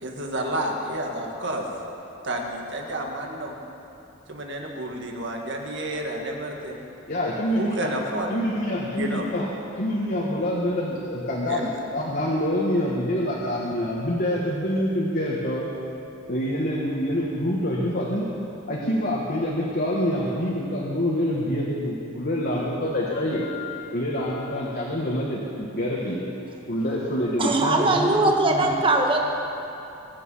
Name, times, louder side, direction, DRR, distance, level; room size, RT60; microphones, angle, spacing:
voice 1, 0.0-1.7 2.2-3.6 4.3-6.8 7.6-8.4 9.0-9.3 11.5-11.6, right 1 dB, 60° right, 1 dB, 1.9 m, -30 dB
voice 2, 7.1-7.9 8.3-9.5 9.7-15.7 16.3-18.3 18.7-26.2 26.7-28.8, equal, 45° left, -5 dB, 1.6 m, -26 dB
voice 3, 27.4-29.2, right 2 dB, 25° right, 1 dB, 1.3 m, -21 dB
22.5 x 8.5 x 5.7 m, 2.8 s
head